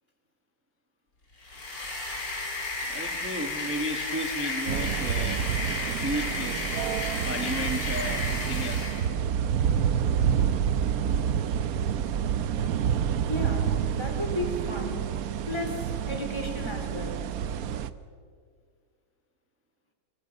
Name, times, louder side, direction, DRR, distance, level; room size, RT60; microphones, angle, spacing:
sound 1, 1.4-9.1, left 2 dB, 55° left, 3.8 m, -33 dB
voice 1, 2.9-5.4 5.9-6.7 7.2-9.0, equal, 10° right, 5 dB, 0.9 m, -34 dB
sound 2, 4.7-17.9, right 8 dB, 70° right, 0.9 m, -28 dB
voice 2, 13.3-15.1 15.5-17.3, left 1 dB, 10° left, 3 dB, 3.0 m, -34 dB
25.5 x 21.5 x 5.3 m, 2.1 s
omnidirectional pair, 2.3 m